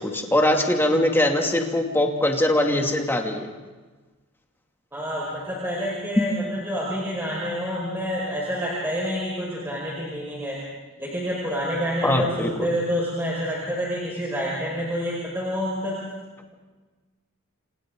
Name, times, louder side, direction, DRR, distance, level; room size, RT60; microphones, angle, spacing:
voice 1, 0.0-3.5 12.0-12.7, left 1 dB, 10° left, 1 dB, 2.6 m, -22 dB
voice 2, 4.9-10.6 11.0-16.0, equal, 10° right, -5 dB, 5.3 m, -28 dB
30.0 x 27.5 x 3.9 m, 1.3 s
head